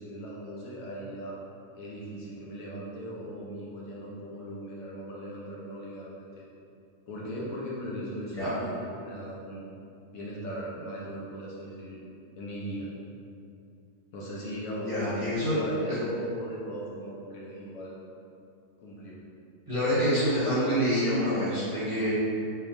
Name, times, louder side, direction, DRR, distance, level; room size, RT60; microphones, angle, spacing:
voice 1, 0.0-1.4 1.7-6.5 7.1-9.6 10.1-12.0 12.4-12.9 14.1-17.9 18.8-19.2, equal, 70° left, -5 dB, 1.0 m, -38 dB
voice 2, 14.9-15.6 19.7-22.1, equal, 25° right, -13 dB, 1.0 m, -26 dB
4.0 x 2.9 x 2.5 m, 2.6 s
omnidirectional pair, 1.6 m